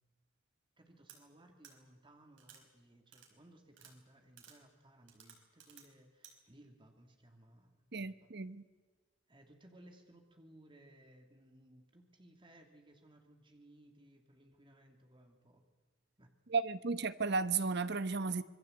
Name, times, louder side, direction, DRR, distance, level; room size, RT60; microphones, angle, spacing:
voice 1, 0.8-8.3 9.3-15.6 16.2-16.3, right 1 dB, 25° right, 3 dB, 2.9 m, -61 dB
sound 1, 1.1-1.2 1.6-1.7 2.4-2.6 3.1-3.3 3.7-3.9 4.4-4.6 5.1-5.9 6.2-6.3, right 8 dB, 80° right, 4.9 m, -57 dB
voice 2, 7.9-8.6 16.5-18.4, right 4 dB, 60° right, 13 dB, 1.0 m, -34 dB
26.0 x 21.5 x 8.2 m, 1.3 s
head